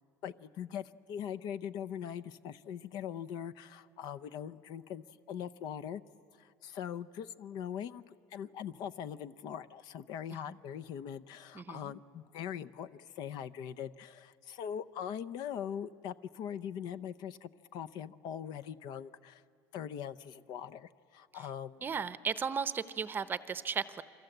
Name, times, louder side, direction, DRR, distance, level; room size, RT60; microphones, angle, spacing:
voice 1, 0.2-6.0 6.4-19.4 19.7-21.8, left 9 dB, 60° left, 13 dB, 0.6 m, -41 dB
voice 2, 11.5-11.9 21.8-24.0, right 6 dB, 25° right, 14 dB, 0.7 m, -35 dB
29.0 x 23.5 x 7.9 m, 2.6 s
cardioid pair, 135°, 8 cm